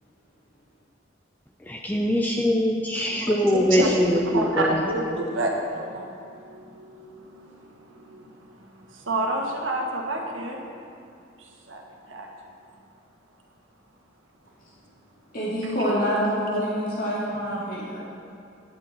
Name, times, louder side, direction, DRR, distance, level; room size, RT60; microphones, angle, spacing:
voice 1, 1.6-4.9, equal, 10° left, 0 dB, 0.6 m, -23 dB
voice 2, 2.9-4.0 4.3-8.3 8.6-10.6 11.7-12.3, right 1 dB, 80° right, 0 dB, 1.6 m, -29 dB
voice 3, 15.3-18.0, equal, 45° left, -7 dB, 2.6 m, -26 dB
11.0 x 10.5 x 4.4 m, 2.6 s
head